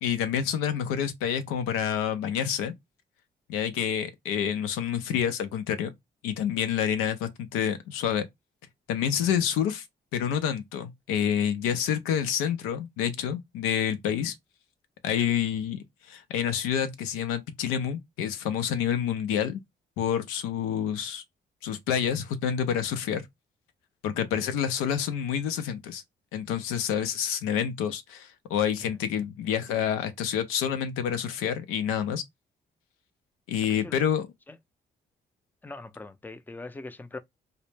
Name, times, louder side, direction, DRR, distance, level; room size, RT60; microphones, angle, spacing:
voice 1, 0.0-2.7 3.5-5.9 6.2-8.3 8.9-9.8 10.1-14.3 15.0-19.6 20.0-21.2 21.6-23.2 24.0-26.0 26.3-32.2 33.5-34.3, left 8 dB, 85° left, 0.4 m, -28 dB
voice 2, 35.6-37.2, left 2 dB, 10° left, 0.4 m, -41 dB
2.0 x 2.0 x 3.1 m
supercardioid pair, 50°, 21 cm